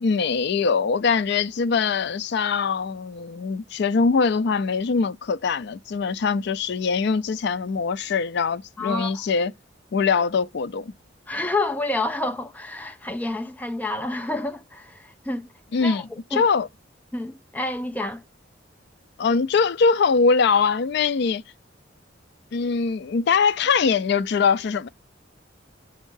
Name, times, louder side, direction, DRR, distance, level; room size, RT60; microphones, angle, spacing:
voice 1, 0.0-9.5 9.9-10.9 15.7-16.0 16.3-16.7 19.2-21.4 22.5-24.9, left 5 dB, 60° left, 0.4 m, -22 dB
voice 2, 8.8-9.2 11.3-15.5 15.8-16.4 17.1-18.2, left 2 dB, 10° left, 0.5 m, -29 dB
6.6 x 3.6 x 5.4 m
head